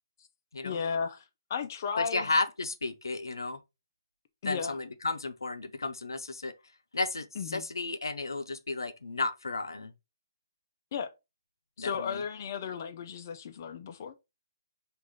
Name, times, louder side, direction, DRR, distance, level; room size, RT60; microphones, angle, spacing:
voice 1, 0.6-1.2 1.5-2.3 4.4-4.8 7.4-7.6 10.9-11.1 11.8-14.1, left 6 dB, 45° left, 0.5 m, -34 dB
voice 2, 2.0-3.6 4.4-6.5 6.9-9.9 11.8-12.2, left 3 dB, 85° left, 0.6 m, -33 dB
4.7 x 2.6 x 3.7 m
hypercardioid pair, 145°, 2 cm